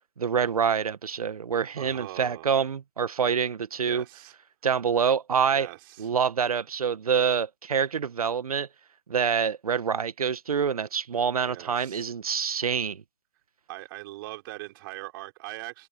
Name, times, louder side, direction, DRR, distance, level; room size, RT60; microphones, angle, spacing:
voice 1, 0.2-4.0 4.6-5.7 6.0-8.7 9.1-13.0, right 7 dB, 70° right, 1.4 m, -26 dB
voice 2, 1.8-2.5 3.8-4.3 5.5-6.1 11.4-12.1 13.7-15.9, right 19 dB, 35° right, 5.5 m, -41 dB
open air
figure-of-eight pair, 140°, 20 cm